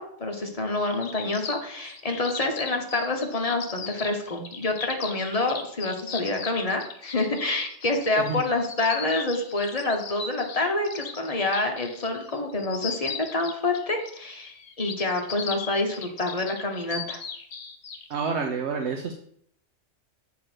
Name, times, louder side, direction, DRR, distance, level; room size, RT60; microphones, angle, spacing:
voice 1, 0.0-17.2, left 2 dB, 35° left, 3 dB, 1.1 m, -27 dB
sound 1, 0.9-18.1, left 5 dB, 65° left, 1.1 m, -38 dB
voice 2, 18.1-19.1, right 5 dB, 70° right, 3 dB, 1.0 m, -28 dB
7.7 x 3.7 x 6.1 m, 0.66 s
omnidirectional pair, 1.2 m